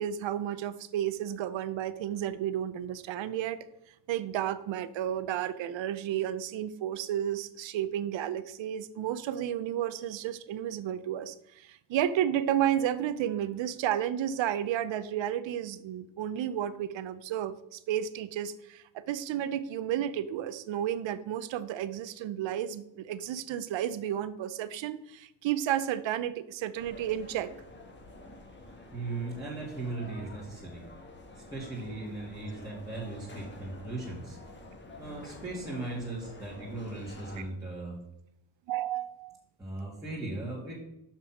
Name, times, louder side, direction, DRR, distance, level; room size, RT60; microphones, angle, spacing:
voice 1, 0.0-3.6 4.1-27.5 38.7-39.4, right 11 dB, 80° right, 14 dB, 0.7 m, -32 dB
sound 1, 26.7-37.4, left 2 dB, 25° left, 1.5 m, -49 dB
voice 2, 28.9-30.8 31.3-34.4 35.0-38.0 39.6-40.8, right 2 dB, 10° right, -8 dB, 2.1 m, -38 dB
6.1 x 5.9 x 5.9 m, 0.82 s
cardioid pair, 105°, 44 cm